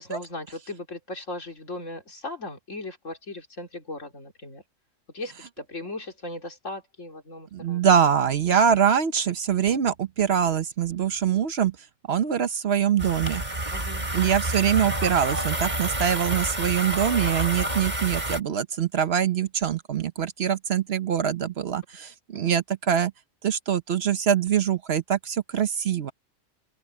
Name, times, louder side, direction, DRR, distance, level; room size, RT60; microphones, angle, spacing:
voice 1, 0.0-4.6 5.1-7.8 13.7-14.4 19.4-19.5 22.4-22.6, left 2 dB, 75° left, 3.7 m, -38 dB
voice 2, 7.5-11.8 12.1-13.4 14.1-23.1 23.4-26.1, right 8 dB, 55° right, 1.0 m, -24 dB
sound 1, 13.0-18.4, right 1 dB, 35° right, 4.6 m, -29 dB
open air
omnidirectional pair, 1.3 m